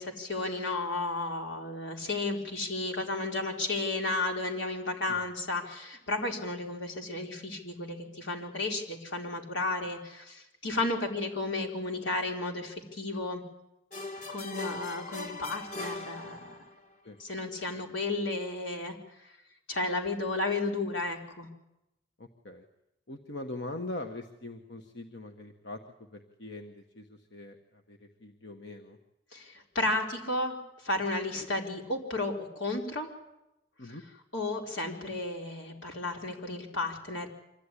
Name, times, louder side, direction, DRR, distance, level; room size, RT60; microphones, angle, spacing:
voice 1, 0.0-13.4 14.3-16.6 17.2-19.0 19.2-19.3 19.7-21.5 29.3-30.6 30.8-33.1 34.3-37.3, left 2 dB, 85° left, 1 dB, 4.2 m, -33 dB
sound 1, 13.9-16.9, left 3 dB, 45° left, 2.0 m, -40 dB
voice 2, 22.2-22.6 23.1-29.0 33.8-34.0, left 2 dB, 60° left, 4 dB, 1.5 m, -42 dB
25.0 x 15.0 x 9.9 m, 0.89 s
head